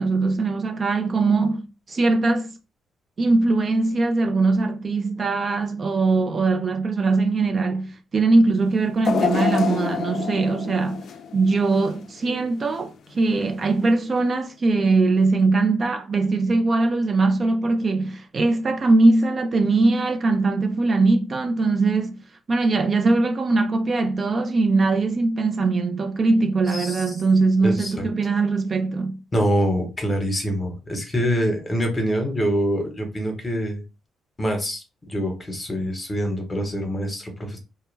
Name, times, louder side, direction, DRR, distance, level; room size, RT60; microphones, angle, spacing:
voice 1, 0.0-2.5 3.2-11.0 11.3-22.2 22.5-29.2, right 3 dB, 40° right, 0.3 m, -21 dB
sound 1, 9.0-12.2 12.6-12.8 13.8-13.9, left 7 dB, 60° left, 0.3 m, -27 dB
voice 2, 26.7-27.0 27.6-28.1 29.3-33.8 34.4-37.6, equal, 25° left, 0.9 m, -25 dB
2.1 x 2.1 x 3.2 m
cardioid pair, 90°, 0 cm